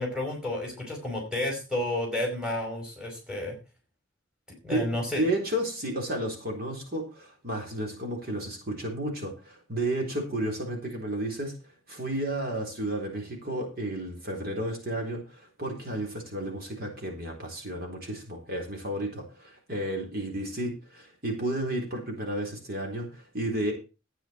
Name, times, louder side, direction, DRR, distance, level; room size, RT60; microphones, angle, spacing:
voice 1, 0.0-3.6 4.5-5.2, left 1 dB, 5° right, 1 dB, 4.7 m, -31 dB
voice 2, 5.2-11.5 11.9-23.7, right 1 dB, 50° right, 1 dB, 3.8 m, -32 dB
12.5 x 9.3 x 4.5 m, 0.31 s
head